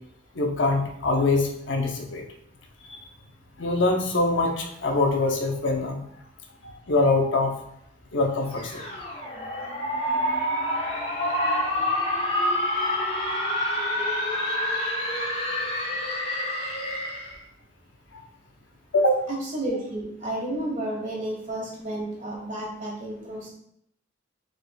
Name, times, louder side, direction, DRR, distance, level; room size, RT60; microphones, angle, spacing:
voice 1, 0.3-2.2 2.9-3.0 3.6-6.0 6.6-7.5 8.1-8.8 11.3-11.6 18.1-18.2 18.9-19.2, left 2 dB, 80° left, 3 dB, 0.8 m, -24 dB
sound 1, 8.5-17.4, left 1 dB, 30° left, 1.0 m, -27 dB
voice 2, 19.3-23.5, right 1 dB, 45° right, -2 dB, 1.4 m, -31 dB
5.0 x 4.3 x 2.3 m, 0.73 s
head